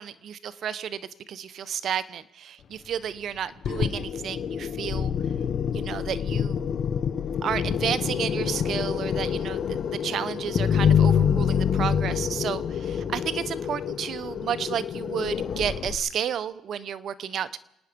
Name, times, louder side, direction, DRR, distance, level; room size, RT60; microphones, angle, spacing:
voice 1, 0.0-5.1 5.7-6.7 7.4-17.6, right 8 dB, 60° right, 15 dB, 0.9 m, -32 dB
sound 1, 3.6-16.0, left 7 dB, 55° left, 1.5 m, -26 dB
28.0 x 9.8 x 5.3 m, 0.84 s
cardioid pair, 85°, 0 cm